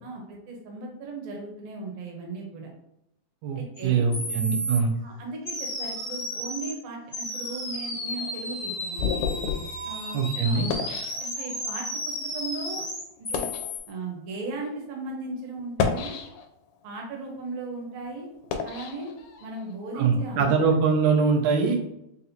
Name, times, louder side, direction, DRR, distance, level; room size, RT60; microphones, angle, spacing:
voice 1, 0.0-2.7 3.6-4.0 5.0-9.3 9.8-10.8 11.2-12.9 13.2-13.5 13.9-16.2 16.8-18.3 18.6-19.1 19.4-20.7, right 3 dB, 70° right, 0 dB, 2.0 m, -37 dB
voice 2, 3.4-4.9 10.1-10.7 19.9-21.8, right 5 dB, 90° right, 1 dB, 2.1 m, -23 dB
sound 1, 3.7-3.8 4.1-4.8 5.5-6.7 7.1-13.8, equal, 45° left, 1.1 m, -33 dB
sound 2, 8.1-11.8 12.5-12.6 13.2-13.7 14.5-14.6 15.6-16.7 17.2-19.7, left 6 dB, 85° left, 2.0 m, -32 dB
5.5 x 2.4 x 2.8 m, 0.82 s
omnidirectional pair, 3.4 m